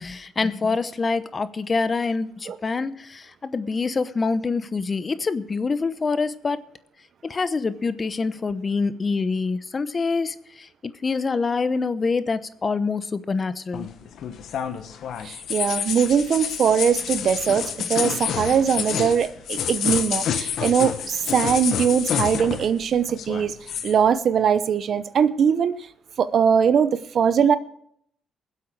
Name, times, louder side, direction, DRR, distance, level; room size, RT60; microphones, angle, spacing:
voice 1, 0.0-6.6 7.2-13.9, left 4 dB, 35° left, 0.9 m, -26 dB
sound 1, 13.7-22.8 23.1-24.0, left 8 dB, 70° left, 1.3 m, -28 dB
voice 2, 15.2-17.6 17.9-23.6 23.8-25.9 26.2-27.6, right 7 dB, 60° right, 0.8 m, -21 dB
20.5 x 8.1 x 4.7 m
cardioid pair, 90°, 0 cm